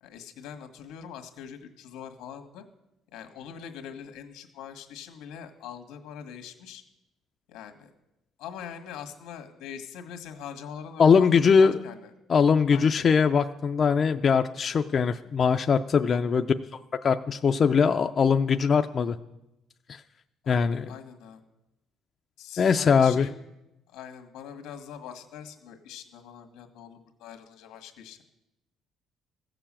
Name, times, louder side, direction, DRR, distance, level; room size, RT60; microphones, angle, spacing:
voice 1, 0.0-2.6 3.1-6.8 7.5-7.9 8.4-11.3 11.6-12.1 12.7-12.9 16.1-16.4 20.4-20.6 20.9-21.4 22.4-23.3 23.9-28.2, left 8 dB, 90° left, 6 dB, 1.5 m, -43 dB
voice 2, 11.0-11.7 12.3-16.5 17.0-19.2 19.9-20.0 20.5-20.9 22.6-23.3, left 6 dB, 35° left, 7 dB, 0.4 m, -21 dB
15.0 x 6.9 x 7.4 m, 0.92 s
cardioid pair, 145°, 0 cm